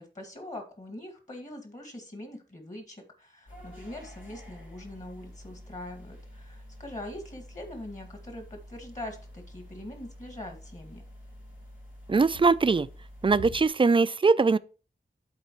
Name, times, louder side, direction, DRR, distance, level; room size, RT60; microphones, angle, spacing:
voice 1, 0.0-11.0, left 1 dB, 40° left, 2.1 m, -42 dB
sound 1, 3.5-13.7, equal, 85° left, 2.1 m, -47 dB
voice 2, 12.1-12.9 13.2-14.6, right 4 dB, 25° right, 0.4 m, -21 dB
12.5 x 4.1 x 3.1 m
wide cardioid pair, 65°, 19 cm